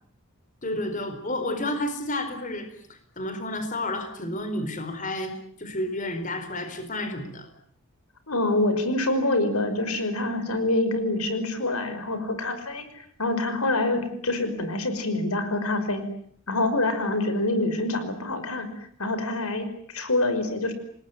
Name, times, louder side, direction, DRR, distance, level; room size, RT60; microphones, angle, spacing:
voice 1, 0.6-2.7 3.2-5.3 5.6-7.5, left 1 dB, 35° left, 9 dB, 4.4 m, -30 dB
voice 2, 8.3-16.1 16.5-20.7, left 2 dB, 90° left, 10 dB, 5.6 m, -26 dB
28.5 x 20.0 x 9.5 m, 0.62 s
head